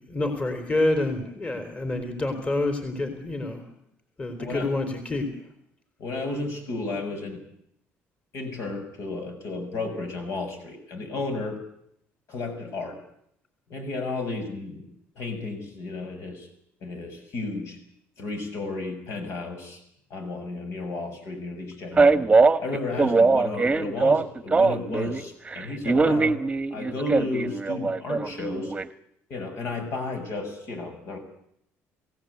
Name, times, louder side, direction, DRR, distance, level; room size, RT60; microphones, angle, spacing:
voice 1, 0.1-3.6 4.2-5.3 22.9-23.1, left 2 dB, 25° left, 6 dB, 4.0 m, -27 dB
voice 2, 4.4-4.7 6.0-7.4 8.3-11.6 12.3-13.0 13.7-14.9 15.1-16.5 16.8-17.8 18.2-19.8 20.1-22.3 22.6-26.4 26.7-28.7 29.3-31.2, left 3 dB, 65° left, 5 dB, 6.8 m, -33 dB
Male speech man speaking, 22.0-25.2 25.5-28.8, right 3 dB, 20° right, 1.1 m, -21 dB
28.0 x 17.0 x 8.3 m, 0.74 s
cardioid pair, 100°, 5 cm